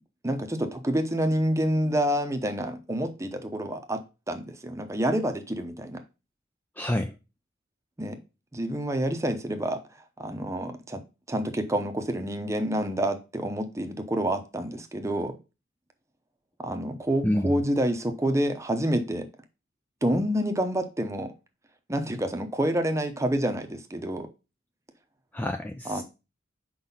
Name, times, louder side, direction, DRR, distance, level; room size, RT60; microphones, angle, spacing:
voice 1, 0.2-4.0 4.3-6.0 8.0-8.2 8.5-9.8 10.2-11.0 11.3-15.3 16.6-19.3 20.0-21.3 21.9-24.3 25.9-26.0, right 1 dB, 15° right, 0.8 m, -28 dB
voice 2, 6.8-7.1 17.2-17.6 25.3-26.0, left 1 dB, 10° left, 0.4 m, -28 dB
5.0 x 4.1 x 5.4 m
head